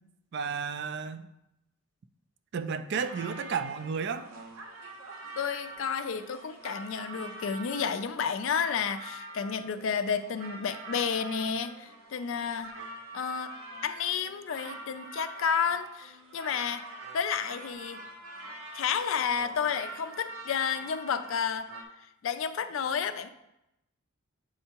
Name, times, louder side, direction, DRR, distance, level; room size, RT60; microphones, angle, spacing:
voice 1, 0.3-1.3 2.5-4.3, right 6 dB, 55° right, 11 dB, 0.3 m, -32 dB
sound 1, 2.9-21.8, right 2 dB, 85° right, 0.8 m, -45 dB
voice 2, 5.4-12.7 13.1-13.5 13.8-16.8 17.1-18.0 18.7-21.7 22.2-23.3, left 7 dB, 65° left, 11 dB, 0.4 m, -31 dB
7.6 x 4.5 x 2.9 m, 0.87 s
head